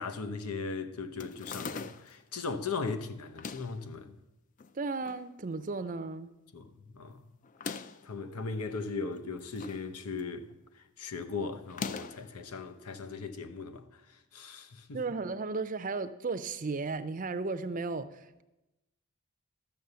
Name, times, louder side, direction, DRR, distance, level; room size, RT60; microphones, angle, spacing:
voice 1, 0.0-4.2 6.5-7.2 8.0-10.5 11.0-13.8 14.3-15.0, left 4 dB, 85° left, 0.9 m, -38 dB
sound 1, 1.2-2.2 3.2-3.8 4.6-5.3 5.6-5.7 5.9-6.0 7.4-8.1 9.1-9.9 10.2-10.5 11.7-12.3, left 5 dB, 35° left, 0.3 m, -41 dB
voice 2, 4.7-6.3 14.9-18.4, right 3 dB, 35° right, 0.5 m, -35 dB
13.0 x 7.0 x 6.8 m
head